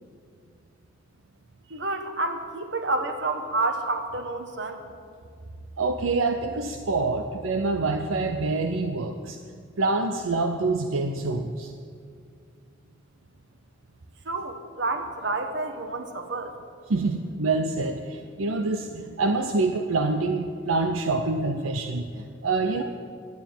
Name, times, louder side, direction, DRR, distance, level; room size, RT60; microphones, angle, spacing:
voice 1, 1.7-4.9 14.2-16.5, right 2 dB, 60° right, 6 dB, 1.3 m, -29 dB
voice 2, 5.8-9.4 9.8-11.7 16.9-22.8, right 3 dB, 80° right, 6 dB, 0.6 m, -26 dB
12.0 x 9.1 x 9.1 m, 2.3 s
head